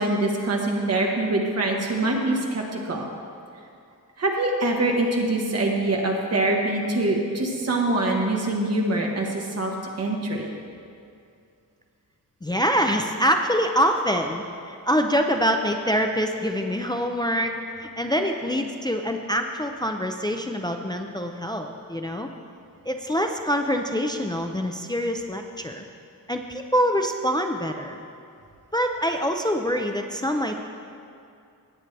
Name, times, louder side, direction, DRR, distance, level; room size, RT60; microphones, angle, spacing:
voice 1, 0.0-3.1 4.2-10.5, right 2 dB, 45° right, 0 dB, 1.4 m, -24 dB
voice 2, 12.4-17.5 17.8-22.3 22.9-25.8 26.3-28.0 28.7-30.6, equal, 10° left, 4 dB, 0.4 m, -25 dB
17.5 x 8.1 x 3.3 m, 2.5 s
wide cardioid pair, 175°, 35 cm